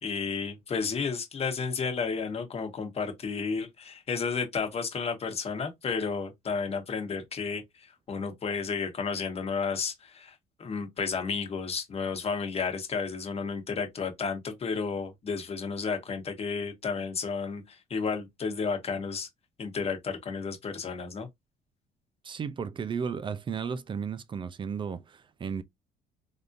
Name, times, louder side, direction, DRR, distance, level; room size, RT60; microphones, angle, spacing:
voice 1, 0.0-10.3 10.6-19.3 19.6-21.3, left 5 dB, 35° left, 1.1 m, -32 dB
voice 2, 22.2-25.6, right 6 dB, 30° right, 0.4 m, -34 dB
3.4 x 2.6 x 2.6 m
cardioid pair, 110°, 17 cm